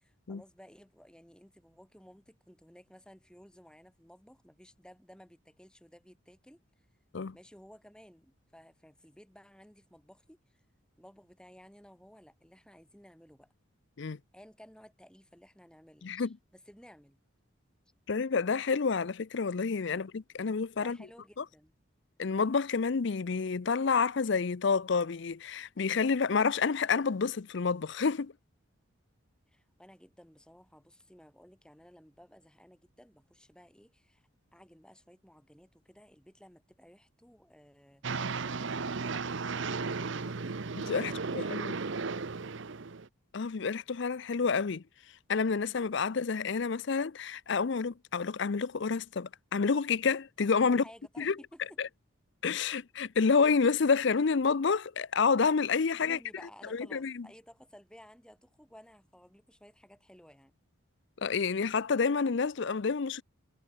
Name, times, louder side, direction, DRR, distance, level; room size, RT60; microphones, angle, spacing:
voice 1, 0.0-6.9 7.3-10.6 11.0-13.5 14.3-17.2 20.8-21.7 29.5-40.6 41.0-42.2 45.8-45.9 50.6-51.8 55.7-60.5, equal, 5° left, 7.7 m, -56 dB
voice 2, 16.0-16.3 18.1-20.1 20.4-21.0 22.2-28.3 40.9-41.7 43.3-44.8 45.3-50.8 51.2-51.3 51.8-51.9 52.4-56.2 56.7-57.3 61.2-63.2, left 5 dB, 55° left, 0.5 m, -29 dB
sound 1, 38.0-43.1, right 4 dB, 60° right, 0.8 m, -35 dB
head